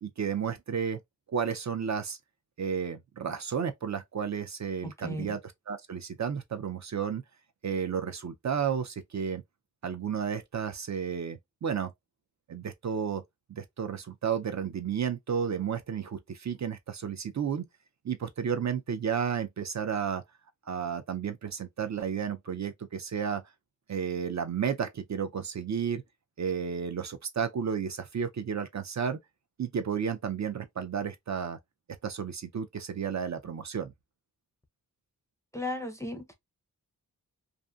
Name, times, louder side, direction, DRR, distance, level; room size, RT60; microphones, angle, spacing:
voice 1, 0.0-1.0 1.3-2.2 2.6-5.4 5.7-7.2 7.6-9.4 9.8-11.9 12.5-13.2 13.5-17.6 18.0-20.2 20.7-23.4 23.9-26.0 26.4-29.2 29.6-31.6 32.0-33.9, right 7 dB, 50° right, 0.4 m, -32 dB
voice 2, 4.8-5.4 35.5-36.3, left 2 dB, 10° left, 0.5 m, -36 dB
2.5 x 2.4 x 2.2 m
wide cardioid pair, 105°, 38 cm